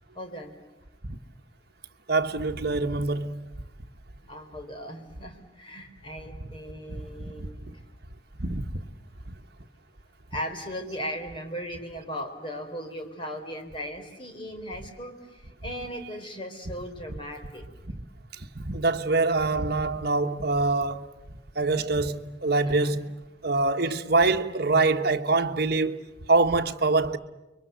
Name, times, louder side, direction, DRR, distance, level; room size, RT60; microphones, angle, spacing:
voice 1, 0.1-0.6 4.3-7.6 10.3-17.7 22.6-23.0, equal, 30° left, 3.7 m, -37 dB
voice 2, 2.1-3.4 6.9-7.7 8.4-8.8 9.3-9.4 15.6-15.7 18.4-23.1 23.4-26.0 26.3-27.2, right 3 dB, 60° right, 1.3 m, -25 dB
30.0 x 23.5 x 8.1 m
head